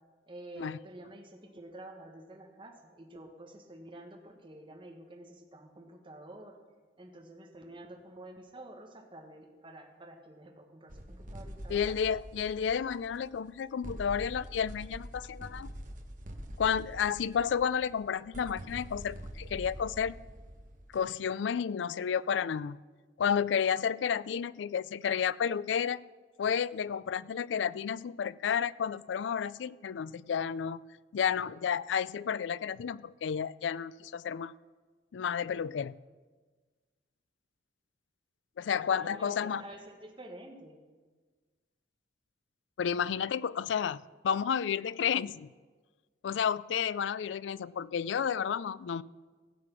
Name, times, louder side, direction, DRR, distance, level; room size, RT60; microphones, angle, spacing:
voice 1, 0.3-6.6 7.0-12.0 38.8-40.8, right 1 dB, 30° right, 2 dB, 1.4 m, -49 dB
sound 1, 10.9-13.5 13.8-21.0, equal, 45° right, 1.2 m, -45 dB
voice 2, 11.7-15.7 16.6-20.1 20.9-22.8 23.2-26.0 26.4-30.8 31.1-34.5 35.1-35.9 38.6-39.6 42.8-45.5 46.2-49.0, left 7 dB, 85° left, 19 dB, 0.4 m, -31 dB
16.0 x 7.7 x 6.0 m, 1.4 s
head